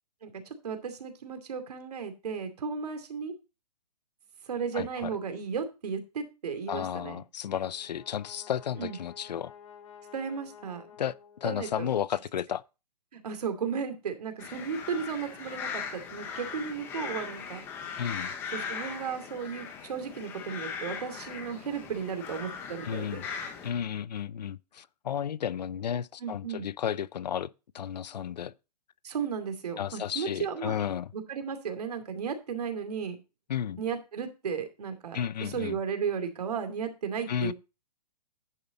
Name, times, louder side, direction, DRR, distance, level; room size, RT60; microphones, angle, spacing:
voice 1, 0.2-3.3 4.5-7.2 8.8-9.0 10.1-10.8 11.4-11.9 13.1-17.6 18.5-23.2 26.2-26.7 29.0-30.7 31.1-33.2 33.8-37.5, right 6 dB, 65° right, 2.6 m, -35 dB
voice 2, 4.7-5.2 6.7-9.5 11.0-11.1 11.4-12.6 18.0-18.3 22.8-23.3 23.6-28.5 29.8-31.1 33.5-33.8 35.1-35.8 37.3-37.5, left 9 dB, 80° left, 0.6 m, -33 dB
Brass instrument, 7.5-11.9, left 8 dB, 50° left, 2.7 m, -52 dB
sound 1, 14.4-23.7, left 6 dB, 10° left, 0.8 m, -39 dB
10.0 x 7.1 x 4.0 m
hypercardioid pair, 175°, 21 cm